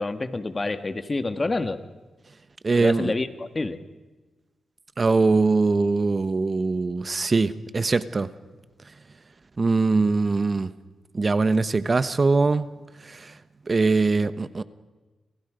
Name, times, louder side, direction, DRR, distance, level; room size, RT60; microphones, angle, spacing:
voice 1, 0.0-1.8 2.8-3.8, left 3 dB, 30° left, 10 dB, 1.8 m, -28 dB
voice 2, 2.6-3.1 5.0-8.3 9.6-10.7 11.1-12.7 13.1-13.3 13.7-14.6, right 3 dB, 40° right, 13 dB, 1.1 m, -22 dB
29.5 x 27.0 x 5.2 m, 1.2 s
cardioid pair, 75°, 0 cm